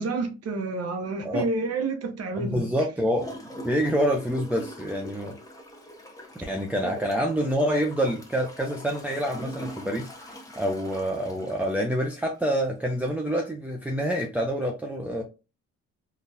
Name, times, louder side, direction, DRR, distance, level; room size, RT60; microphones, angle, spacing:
voice 1, 0.0-2.7 6.8-6.9, right 3 dB, 55° right, 0.8 m, -29 dB
voice 2, 2.3-3.4 3.6-5.3 6.4-15.2, equal, 5° right, 0.5 m, -27 dB
Gurgling / Toilet flush, 3.2-12.6 13.1-13.2, equal, 10° left, 1.0 m, -42 dB
3.9 x 2.3 x 2.6 m
cardioid pair, 90°, 30 cm